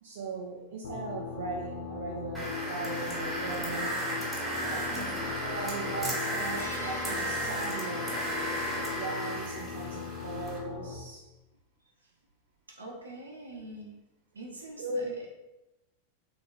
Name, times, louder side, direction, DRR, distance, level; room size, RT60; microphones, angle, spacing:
voice 1, 0.0-4.0 4.6-8.2 8.7-11.3 14.8-15.1, right 3 dB, 55° right, -2 dB, 0.5 m, -38 dB
sound 1, 0.8-10.9, left 7 dB, 65° left, 0.5 m, -40 dB
sound 2, 2.3-10.6, right 1 dB, ahead, 1.4 m, -34 dB
voice 2, 4.9-5.3 12.7-14.0 14.4-15.0, right 1 dB, 80° right, -2 dB, 0.8 m, -44 dB
sound 3, 6.2-8.0 8.3-8.5 9.8-10.1, right 1 dB, 80° left, 1.0 m, -48 dB
3.4 x 3.3 x 2.5 m, 1.0 s
figure-of-eight pair, 90°, 0 cm